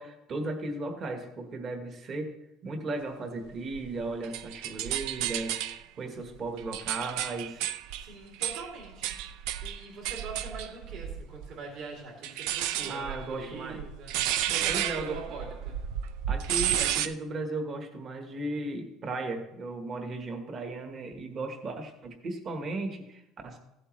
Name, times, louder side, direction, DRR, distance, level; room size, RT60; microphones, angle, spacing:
voice 1, 0.0-2.3 2.6-7.6 12.8-13.8 14.7-15.2 16.3-23.6, right 2 dB, 35° right, 5 dB, 1.2 m, -36 dB
sound 1, 3.7-5.8 6.4-11.5 12.2-17.1, right 11 dB, 80° right, 0.4 m, -32 dB
voice 2, 8.0-15.8, right 4 dB, 60° right, -3 dB, 2.9 m, -43 dB
15.5 x 7.8 x 3.2 m, 0.91 s
cardioid pair, 155°, 0 cm